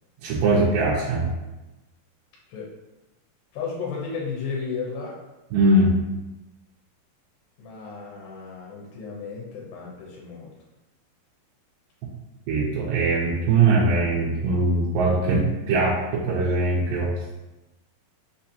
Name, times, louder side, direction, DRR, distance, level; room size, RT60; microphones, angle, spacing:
voice 1, 0.2-1.3 5.5-6.0 12.5-17.1, right 2 dB, 80° right, -6 dB, 2.1 m, -21 dB
voice 2, 3.5-5.2 7.6-10.5, left 5 dB, 90° left, -3 dB, 2.4 m, -33 dB
5.8 x 2.6 x 2.7 m, 1.0 s
omnidirectional pair, 4.1 m